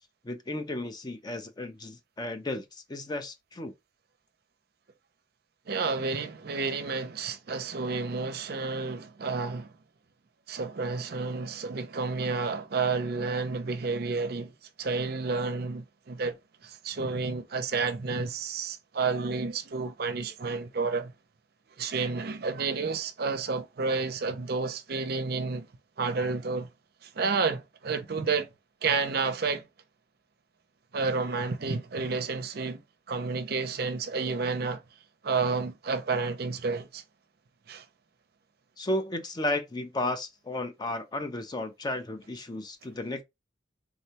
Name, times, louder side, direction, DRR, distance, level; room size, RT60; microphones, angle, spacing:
voice 1, 0.2-3.7 38.8-43.2, left 1 dB, 20° left, 0.4 m, -33 dB
voice 2, 5.7-9.7 10.5-21.1 21.8-25.7 26.0-26.7 27.0-28.5 28.8-29.6 30.9-32.8 33.1-34.8 35.2-37.0 37.7-37.8, right 4 dB, 55° right, 0.5 m, -30 dB
3.6 x 2.2 x 2.7 m
head